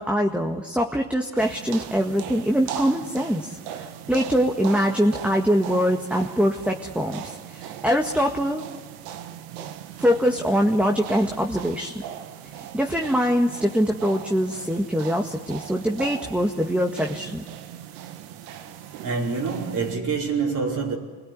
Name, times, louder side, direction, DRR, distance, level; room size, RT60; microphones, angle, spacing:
voice 1, 0.0-8.6 10.0-11.9 12.7-17.4, equal, 5° right, 1.9 m, -23 dB
sound 1, 1.4-20.0, right 10 dB, 80° right, 1.7 m, -39 dB
voice 2, 19.0-21.0, right 5 dB, 50° right, 4.9 m, -26 dB
25.5 x 21.0 x 9.6 m
supercardioid pair, 85°, 39 cm